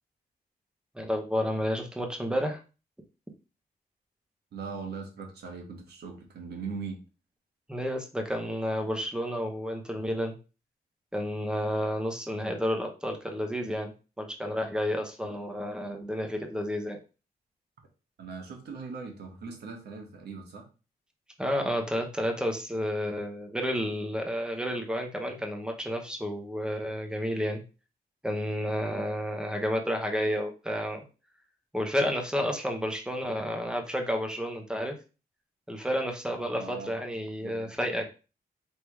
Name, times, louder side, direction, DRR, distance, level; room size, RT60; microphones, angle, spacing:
voice 1, 0.9-2.6 7.7-10.3 11.1-13.9 14.2-17.0 21.4-27.6 28.2-31.0 31.7-35.0 35.7-38.0, equal, 5° right, 3 dB, 0.8 m, -31 dB
voice 2, 4.5-7.0 15.2-15.3 18.2-20.6 36.5-36.9 37.4-37.7, right 5 dB, 85° right, 1 dB, 1.3 m, -40 dB
3.5 x 2.9 x 4.6 m, 0.33 s
wide cardioid pair, 140°, 17 cm